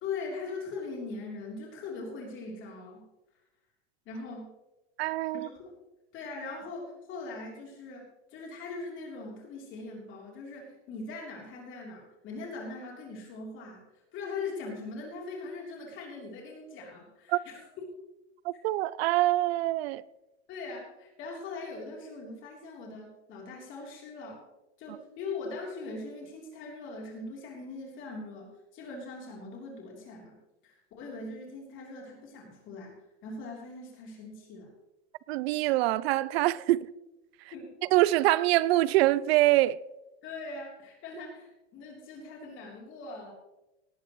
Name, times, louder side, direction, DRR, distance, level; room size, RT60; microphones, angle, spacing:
voice 1, 0.0-3.0 4.1-4.5 5.3-5.7 6.1-13.8 14.1-17.6 20.5-24.4 24.8-30.4 30.6-32.9 33.2-34.7 36.7-36.8 37.5-37.7 40.2-43.3, left 3 dB, 35° left, 3.5 m, -41 dB
voice 2, 5.0-5.5 17.3-17.4 18.4-20.0 35.3-36.9 37.9-39.8, right 16 dB, 65° right, 0.5 m, -24 dB
18.5 x 11.5 x 3.1 m
supercardioid pair, 140°, 34 cm